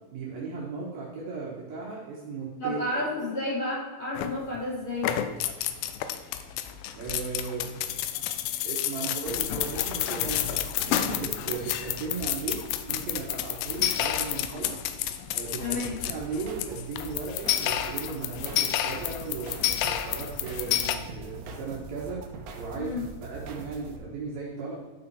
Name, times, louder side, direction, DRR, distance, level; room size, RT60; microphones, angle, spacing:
voice 1, 0.1-2.8 6.9-7.7 8.6-12.6 12.9-14.8 15.3-15.8 16.0-19.6 19.8-22.2 22.5-22.9 23.2-24.8, right 4 dB, 65° right, -4 dB, 2.7 m, -36 dB
voice 2, 2.6-5.2 15.6-16.0 22.7-23.1, left 1 dB, 40° left, -7 dB, 4.2 m, -31 dB
sound 1, 4.2-4.6 4.9-21.0, left 11 dB, 90° left, 3.1 m, -30 dB
sound 2, 16.0-24.0, right 4 dB, 80° right, 1.7 m, -43 dB
12.5 x 5.9 x 4.7 m, 1.4 s
omnidirectional pair, 5.4 m